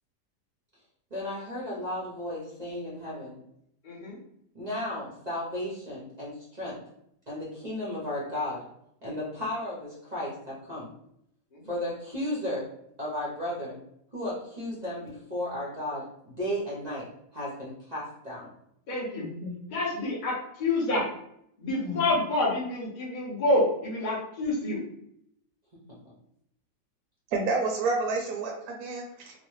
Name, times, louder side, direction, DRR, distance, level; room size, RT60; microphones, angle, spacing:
voice 1, 1.1-3.4 4.5-6.8 7.3-8.6 9.0-10.9 11.6-12.7 13.0-13.8 14.1-17.1 17.3-18.5 21.8-21.9, left 1 dB, 45° right, -6 dB, 0.5 m, -34 dB
voice 2, 3.8-4.2 11.5-11.6 18.9-19.3 19.7-21.1 21.6-24.8, left 2 dB, 50° left, -4 dB, 0.5 m, -28 dB
voice 3, 19.2-19.6 21.8-22.0 27.3-29.3, right 3 dB, 75° right, 0 dB, 1.0 m, -30 dB
3.0 x 2.1 x 3.0 m, 0.73 s
omnidirectional pair, 1.7 m